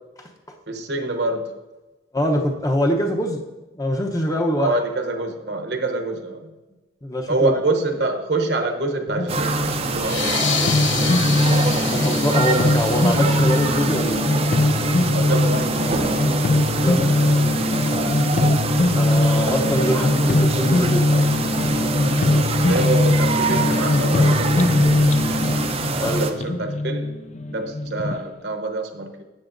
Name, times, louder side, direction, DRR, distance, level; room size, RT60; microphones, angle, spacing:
voice 1, 0.7-1.5 4.6-6.5 7.3-10.5 15.1-16.2 22.3-25.0 26.2-27.2 27.5-29.2, right 2 dB, 60° right, 5 dB, 0.9 m, -26 dB
voice 2, 2.1-3.4 3.7-4.7 7.0-7.5 11.8-14.2 16.8-18.0 18.9-21.1 26.0-26.4, equal, 20° left, 2 dB, 0.8 m, -24 dB
sound 1, 9.1-28.2, left 2 dB, 35° left, 0.4 m, -21 dB
sound 2, 9.3-26.3, right 4 dB, 30° right, 0.5 m, -26 dB
sound 3, 10.0-15.1, left 8 dB, 75° left, 0.7 m, -30 dB
12.5 x 7.9 x 2.6 m, 1.1 s
head